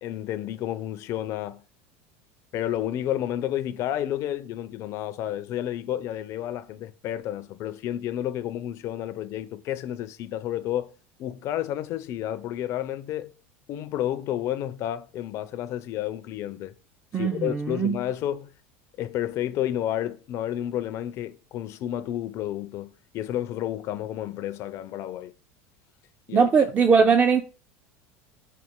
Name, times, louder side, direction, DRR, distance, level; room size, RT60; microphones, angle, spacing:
voice 1, 0.0-1.6 2.5-10.9 11.2-13.3 13.7-16.7 17.1-18.5 19.0-25.3 26.3-26.5, left 12 dB, 50° left, 0.4 m, -31 dB
voice 2, 17.1-18.0 26.3-27.4, right 5 dB, 25° right, 0.3 m, -20 dB
4.0 x 2.8 x 3.5 m
supercardioid pair, 110°, 7 cm